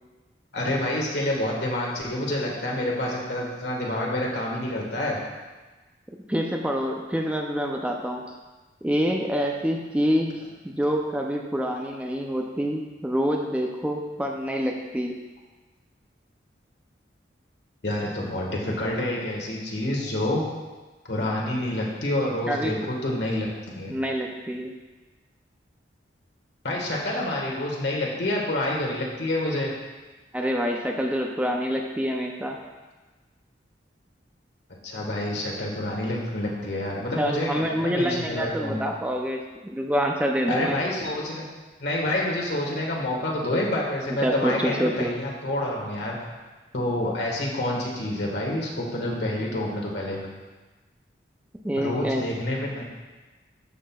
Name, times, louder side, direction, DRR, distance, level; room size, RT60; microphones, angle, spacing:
voice 1, 0.5-5.2 17.8-20.4 21.1-23.9 26.6-29.7 34.8-38.8 40.5-41.4 41.8-46.2 46.7-50.2 51.8-52.8, left 1 dB, 70° left, -2 dB, 1.6 m, -28 dB
voice 2, 6.3-8.2 8.8-15.2 22.5-22.9 23.9-24.7 30.3-32.6 37.2-40.8 44.2-45.1 51.6-52.2, equal, 10° right, 1 dB, 0.4 m, -26 dB
12.5 x 6.0 x 2.3 m, 1.3 s
head